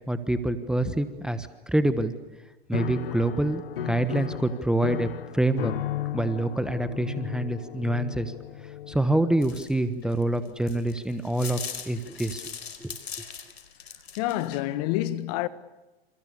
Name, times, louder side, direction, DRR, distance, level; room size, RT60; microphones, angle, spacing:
voice 1, 0.1-2.1 2.7-5.7 6.1-8.3 8.9-11.6 11.8-12.5 12.8-12.9, right 1 dB, ahead, 1.2 m, -26 dB
Piano, 2.7-9.5, left 11 dB, 60° left, 1.8 m, -35 dB
sound 1, 9.4-14.6, left 7 dB, 75° left, 4.6 m, -40 dB
voice 2, 14.2-15.5, left 15 dB, 40° left, 1.6 m, -27 dB
30.0 x 28.5 x 7.0 m
hypercardioid pair, 125°, 32 cm